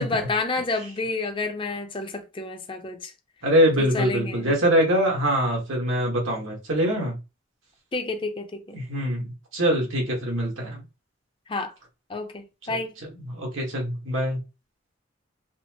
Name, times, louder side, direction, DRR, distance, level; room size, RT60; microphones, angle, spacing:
voice 1, 0.0-3.1 3.8-4.5 7.9-8.8 11.5-11.7 12.1-12.9, left 3 dB, 25° left, 0.5 m, -29 dB
voice 2, 3.4-7.2 8.7-9.3 9.5-10.8 12.7-14.4, equal, 85° right, 1.4 m, -24 dB
4.1 x 2.0 x 2.8 m
head